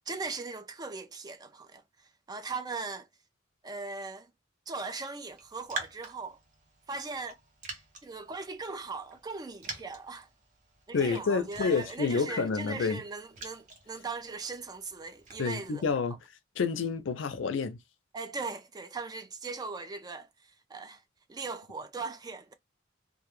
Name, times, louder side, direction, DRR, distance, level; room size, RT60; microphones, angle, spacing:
voice 1, 0.1-3.1 3.6-4.3 4.7-6.4 6.9-7.4 8.0-10.3 10.9-15.8 18.1-21.0 21.3-22.5, right 4 dB, 20° right, 0.3 m, -39 dB
Raindrop, 5.3-15.9, right 3 dB, 45° right, 0.7 m, -47 dB
voice 2, 10.9-13.0 15.4-16.2 16.6-17.8, left 5 dB, 75° left, 0.5 m, -29 dB
2.1 x 2.1 x 3.0 m
head